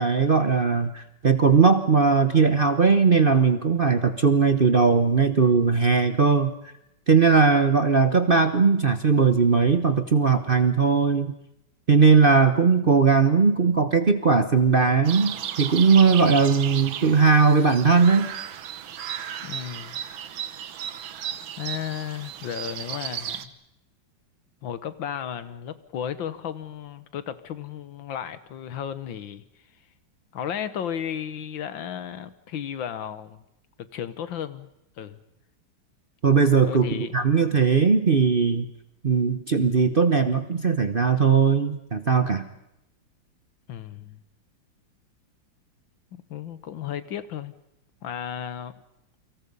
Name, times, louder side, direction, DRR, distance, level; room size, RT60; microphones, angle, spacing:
voice 1, 0.0-6.5 7.1-11.3 11.9-18.3 36.2-38.7 39.0-42.4, right 5 dB, 40° right, 10 dB, 0.9 m, -19 dB
sound 1, 15.0-23.5, right 9 dB, 90° right, 1.9 m, -35 dB
voice 2, 19.4-20.0 21.6-23.5 24.6-29.5 30.3-33.4 33.8-34.7 35.0-35.2 36.7-37.2 43.7-44.2 46.1-47.5 48.0-48.7, left 9 dB, 75° left, 13 dB, 1.9 m, -34 dB
29.0 x 25.0 x 5.5 m, 0.83 s
omnidirectional pair, 2.1 m